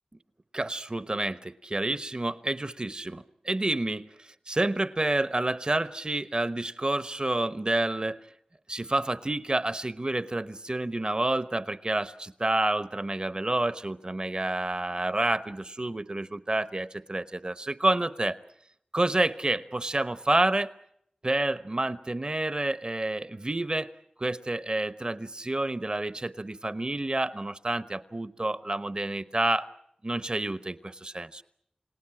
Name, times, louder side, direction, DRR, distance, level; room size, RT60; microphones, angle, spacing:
voice 1, 0.5-8.2 8.7-18.4 18.9-20.7 21.2-23.9 24.2-29.7 30.0-31.4, right 2 dB, 40° right, 14 dB, 1.0 m, -29 dB
29.5 x 17.5 x 8.8 m, 0.74 s
wide cardioid pair, 60°, 2 cm